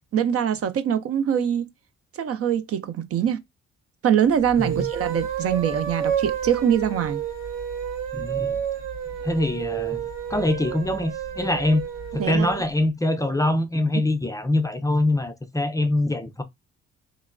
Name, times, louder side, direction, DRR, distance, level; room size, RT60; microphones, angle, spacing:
voice 1, 0.1-1.7 2.1-3.4 4.0-7.2 12.2-12.5 13.9-14.0, right 9 dB, 50° right, 0.4 m, -23 dB
sound 1, 4.5-12.6, right 8 dB, 75° right, 1.9 m, -30 dB
voice 2, 8.1-8.6 9.2-10.0 10.3-11.8 12.1-16.4, left 1 dB, 10° left, 0.4 m, -24 dB
3.0 x 2.1 x 2.4 m
cardioid pair, 90°, 30 cm